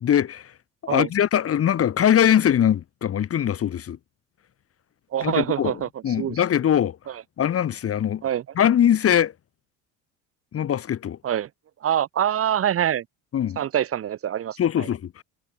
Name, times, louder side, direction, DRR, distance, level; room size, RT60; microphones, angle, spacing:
voice 1, 0.0-0.4 0.8-4.0 5.2-5.7 6.0-7.0 7.4-8.2 8.6-9.3 10.5-11.2 13.3-13.6 14.6-15.2, left 9 dB, 35° left, 1.1 m, -21 dB
voice 2, 5.1-6.4 7.1-7.2 8.2-8.4 11.2-11.5 11.8-13.0 13.6-14.9, right 10 dB, 35° right, 0.8 m, -25 dB
supercardioid pair, 80°, 38 cm